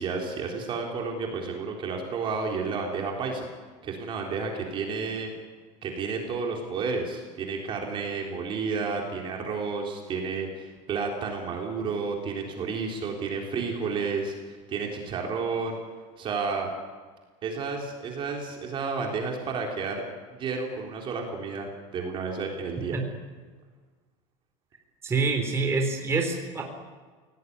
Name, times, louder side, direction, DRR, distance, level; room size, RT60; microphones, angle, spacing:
voice 1, 0.0-3.5 3.8-5.3 5.8-15.8 16.2-16.7 17.4-20.0 20.3-23.0, right 4 dB, 30° right, 1 dB, 3.8 m, -31 dB
voice 2, 25.0-26.6, right 4 dB, 15° right, 2 dB, 3.9 m, -26 dB
27.5 x 18.0 x 9.6 m, 1.5 s
cardioid pair, 165°, 16 cm